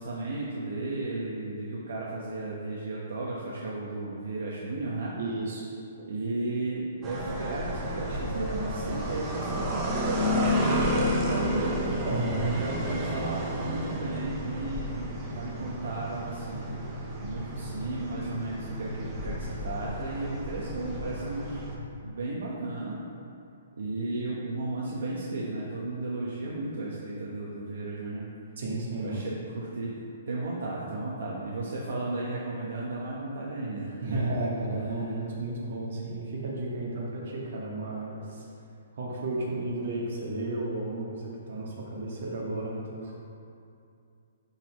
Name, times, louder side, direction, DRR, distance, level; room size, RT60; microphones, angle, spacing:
voice 1, 0.0-5.1 6.1-11.8 12.3-16.7 17.2-21.6 22.0-23.0 23.8-28.3 29.0-30.0 30.3-34.3, right 2 dB, 70° right, -5 dB, 1.0 m, -34 dB
voice 2, 5.1-5.7 12.1-12.4 28.6-29.2 34.0-38.5 38.9-43.1, right 2 dB, 55° right, -4 dB, 1.7 m, -33 dB
sound 1, 7.0-21.8, equal, 15° right, 0.7 m, -31 dB
11.5 x 4.1 x 3.1 m, 2.5 s
hypercardioid pair, 170°, 0 cm